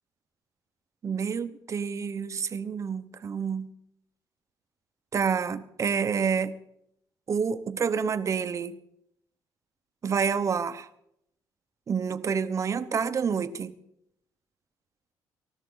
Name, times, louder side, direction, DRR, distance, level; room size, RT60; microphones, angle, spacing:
voice 1, 1.0-3.7 5.1-6.5 7.3-8.8 10.0-10.9 11.9-13.7, right 6 dB, 40° right, 1.0 m, -28 dB
19.0 x 13.5 x 4.0 m
cardioid pair, 90°, 8 cm